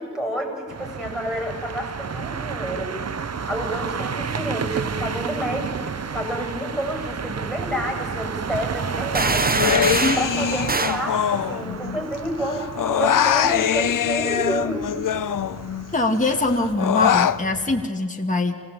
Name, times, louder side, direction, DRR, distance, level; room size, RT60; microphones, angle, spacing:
voice 1, 0.0-2.9 3.5-9.6 10.2-14.9, equal, ahead, 3 dB, 7.4 m, -29 dB
sound 1, 0.7-17.9, right 6 dB, 55° right, 0.9 m, -31 dB
sound 2, 9.1-10.3 10.7-11.0, right 3 dB, 30° right, 1.0 m, -23 dB
Human voice, 9.5-12.2 12.4-15.9 16.3-17.4, left 10 dB, 85° left, 0.6 m, -23 dB
voice 2, 15.9-18.6, left 2 dB, 25° left, 1 dB, 2.0 m, -22 dB
26.5 x 17.5 x 8.7 m, 2.1 s
wide cardioid pair, 70°, 31 cm